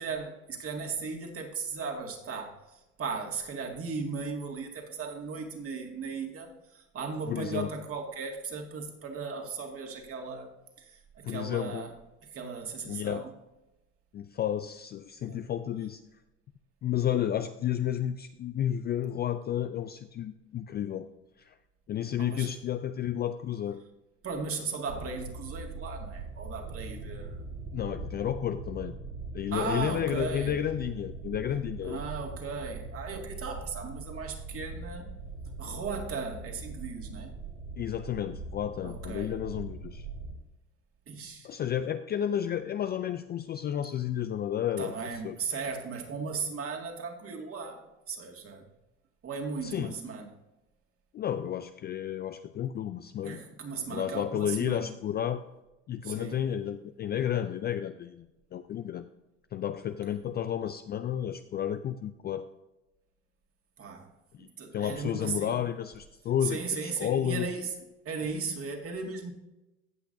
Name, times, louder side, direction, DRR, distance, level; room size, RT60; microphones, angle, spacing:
voice 1, 0.0-10.5 10.8-12.0 12.2-13.3 15.2-15.5 22.2-22.6 24.2-27.4 29.5-30.6 31.8-35.1 35.6-37.3 38.8-39.4 41.1-41.5 44.8-48.7 49.2-50.3 53.2-54.9 56.0-56.4 60.1-60.2 63.8-64.1 64.4-65.6 66.4-67.7 68.0-69.3, right 5 dB, 35° right, 2 dB, 2.1 m, -37 dB
voice 2, 7.3-7.7 11.2-11.9 12.9-13.2 14.1-16.0 16.8-21.1 21.4-21.6 21.9-23.8 27.7-28.9 29.3-32.0 37.8-40.1 41.4-44.9 45.2-45.4 49.6-49.9 51.1-53.4 53.9-55.4 55.9-58.3 58.5-59.1 59.5-62.5 64.3-67.5, left 10 dB, 30° left, 10 dB, 0.4 m, -32 dB
sound 1, 24.9-40.3, right 3 dB, 75° right, 3.5 m, -41 dB
16.5 x 5.9 x 2.7 m, 0.97 s
hypercardioid pair, 85°, 37 cm